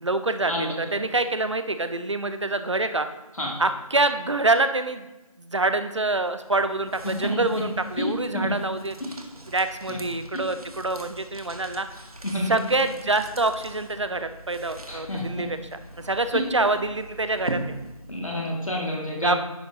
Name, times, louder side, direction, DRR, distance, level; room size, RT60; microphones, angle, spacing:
voice 1, 0.0-3.1 3.6-5.1 5.4-8.9 9.5-11.9 12.5-15.8 16.0-17.8 19.2-19.3, right 2 dB, 50° right, 10 dB, 0.5 m, -26 dB
sound 1, 6.2-18.4, right 1 dB, 75° right, 1.1 m, -41 dB
voice 2, 14.9-15.2 16.3-16.4 18.1-19.4, left 1 dB, 60° left, -2 dB, 2.1 m, -28 dB
10.5 x 6.3 x 2.8 m, 1.0 s
figure-of-eight pair, 175°, 19 cm